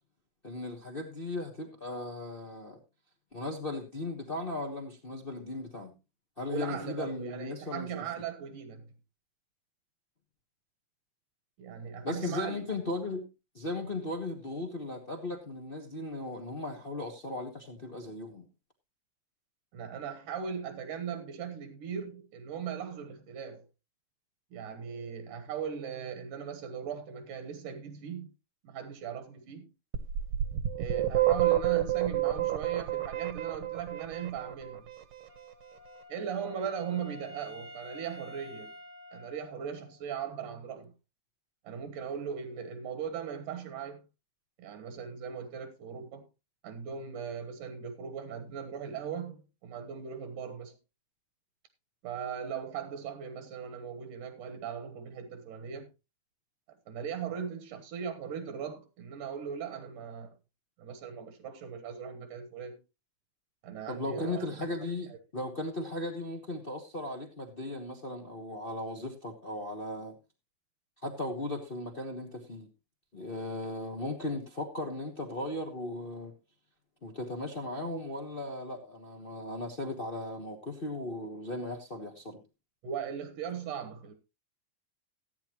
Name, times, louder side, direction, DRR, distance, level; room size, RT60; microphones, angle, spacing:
voice 1, 0.4-2.8 3.3-5.9 6.4-7.9 12.0-13.2 13.5-18.5 63.9-70.2 71.0-72.7 73.1-76.3 77.0-82.4, left 2 dB, 70° left, 0.5 m, -37 dB
voice 2, 6.5-8.9 11.6-12.6 19.7-23.7 24.5-28.3 28.6-29.7 30.8-34.9 36.1-38.7 39.1-40.9 41.6-44.0 44.6-46.2 46.6-50.7 52.0-55.9 56.9-60.3 60.8-62.8 63.6-64.7 65.1-65.2 82.8-84.1, right 7 dB, 85° right, 2.9 m, -39 dB
sound 1, 29.9-34.8, right 13 dB, 60° right, 1.7 m, -28 dB
Wind instrument woodwind instrument, 35.3-40.1, left 3 dB, 40° right, 1.0 m, -49 dB
15.5 x 9.1 x 3.0 m
omnidirectional pair, 3.5 m